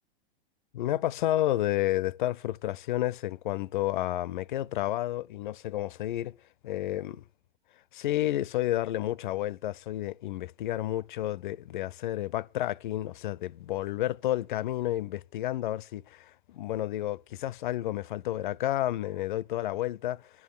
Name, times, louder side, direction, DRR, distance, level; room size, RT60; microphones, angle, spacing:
voice 1, 0.7-6.3 6.6-7.2 7.9-20.3, left 14 dB, 55° left, 0.6 m, -31 dB
11.0 x 8.5 x 9.7 m
figure-of-eight pair, 100°, 30 cm